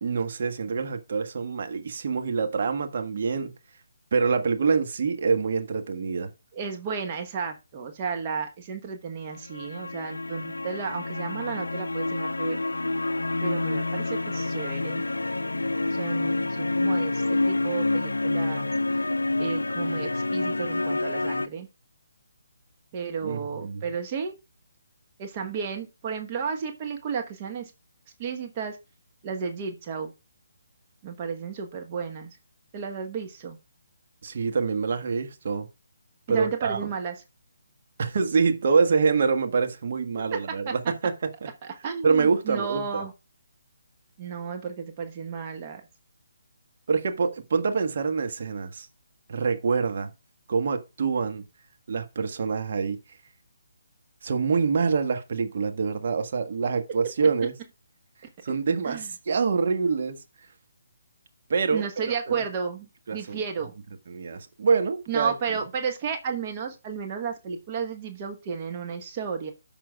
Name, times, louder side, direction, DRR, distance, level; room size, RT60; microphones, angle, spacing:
voice 1, 0.0-3.5 4.1-6.3 23.2-23.8 34.2-35.7 36.3-36.9 38.0-41.3 42.0-43.0 46.9-48.9 49.3-50.1 50.5-51.4 51.9-53.0 54.2-57.5 58.4-60.2 61.5-62.4 63.1-63.4 64.1-65.3, right 5 dB, 50° right, 1.4 m, -25 dB
voice 2, 6.5-12.6 13.4-15.0 15.9-19.0 19.4-21.7 22.9-24.3 25.2-27.7 28.2-28.8 29.2-30.1 31.0-32.3 32.7-33.6 36.3-37.1 40.3-40.7 41.6-43.1 44.2-45.8 58.8-59.1 61.7-62.9 63.1-63.7 65.1-69.5, right 6 dB, 30° right, 1.2 m, -33 dB
sound 1, 9.3-21.5, left 2 dB, 80° left, 0.4 m, -28 dB
13.5 x 5.5 x 2.4 m
figure-of-eight pair, 145°, 0 cm